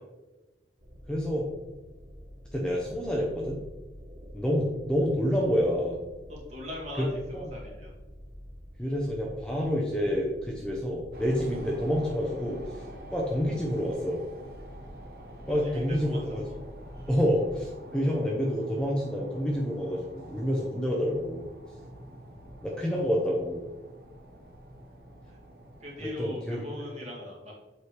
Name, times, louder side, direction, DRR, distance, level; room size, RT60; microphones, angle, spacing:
sound 1, 0.8-17.7, equal, 75° right, 1.8 m, -47 dB
voice 1, 1.1-1.5 2.5-3.6 4.3-6.0 7.0-7.1 7.3-7.5 8.8-12.8 13.1-14.2 15.5-16.4 17.1-21.5 22.6-23.7 26.0-26.6, equal, 5° left, -3 dB, 0.7 m, -28 dB
voice 2, 6.3-7.9 15.4-16.5 25.3-25.4 25.8-27.5, left 1 dB, 40° right, -4 dB, 2.0 m, -41 dB
sound 2, 11.1-26.1, right 1 dB, 60° right, 1.0 m, -47 dB
7.2 x 4.9 x 3.3 m, 1.2 s
head